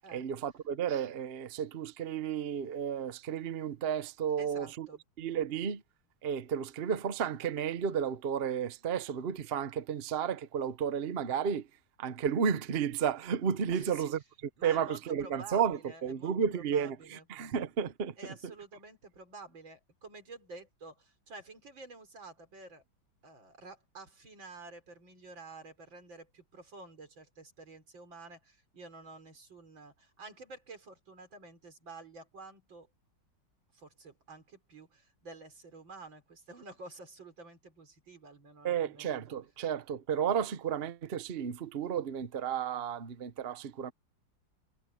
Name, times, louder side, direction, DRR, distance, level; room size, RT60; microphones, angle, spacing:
voice 1, 0.1-4.9 5.2-5.8 6.2-11.7 12.0-14.2 14.6-18.5 38.6-43.9, right 7 dB, 45° right, 0.9 m, -32 dB
voice 2, 4.4-5.0 13.7-14.1 14.6-17.2 18.2-22.8 23.2-32.9 33.7-39.2, right 3 dB, 90° right, 5.1 m, -50 dB
omnidirectional pair, 2.0 m